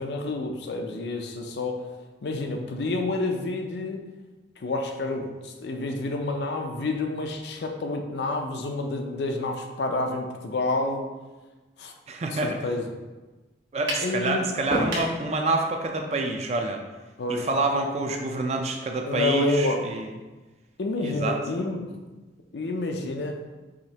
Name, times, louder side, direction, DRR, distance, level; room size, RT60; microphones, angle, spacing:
voice 1, 0.0-1.9 2.2-4.0 4.6-11.1 11.8-11.9 12.3-12.9 14.0-14.5 17.2-17.5 19.1-19.8 20.8-21.9 22.5-23.4, left 2 dB, 70° left, 3 dB, 0.5 m, -29 dB
voice 2, 12.1-12.6 13.7-16.8 17.3-20.1 21.0-21.4, right 2 dB, 35° right, 3 dB, 0.4 m, -27 dB
sound 1, 13.9-14.1 14.7-15.2, right 1 dB, 75° right, 1.2 m, -27 dB
4.9 x 3.1 x 2.8 m, 1.2 s
head